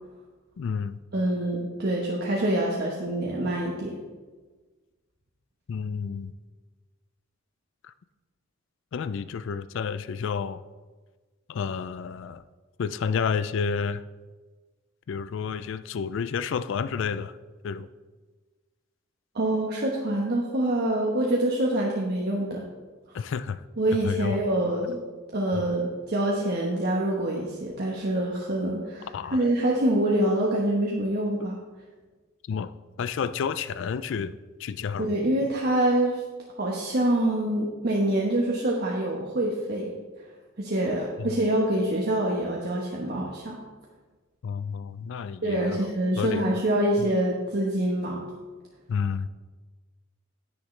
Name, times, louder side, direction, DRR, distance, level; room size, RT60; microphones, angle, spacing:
voice 1, 0.6-1.0 5.7-6.3 8.9-10.6 11.5-12.4 12.8-14.0 15.1-17.3 17.6-17.9 23.1-23.6 24.0-24.4 25.5-25.7 29.1-29.4 32.5-32.7 33.0-34.3 34.6-35.2 41.2-41.3 44.4-45.8 46.2-46.5 47.0-47.1 48.9-49.3, left 6 dB, 65° left, 13 dB, 0.3 m, -30 dB
voice 2, 1.1-3.9 19.3-22.6 23.8-25.0 25.3-31.6 35.0-36.2 36.6-39.9 40.6-43.6 45.4-48.2, right 1 dB, 50° right, -2 dB, 1.1 m, -25 dB
10.0 x 9.5 x 3.3 m, 1.3 s
head